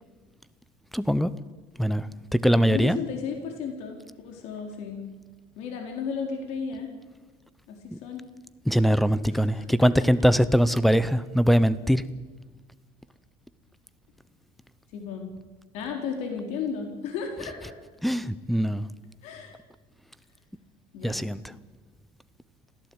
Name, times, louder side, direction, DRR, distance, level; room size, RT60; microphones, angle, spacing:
voice 1, 0.9-1.3 1.8-3.0 7.9-8.0 8.7-12.0 18.0-18.8 21.0-21.5, equal, ahead, 16 dB, 0.7 m, -22 dB
voice 2, 2.5-5.0 5.6-6.9 7.7-8.2 9.3-9.7 14.9-15.2 15.7-17.8 19.2-19.6 20.9-21.3, left 6 dB, 65° left, 3 dB, 4.1 m, -34 dB
26.5 x 16.5 x 8.9 m, 1.3 s
cardioid pair, 180°, 12 cm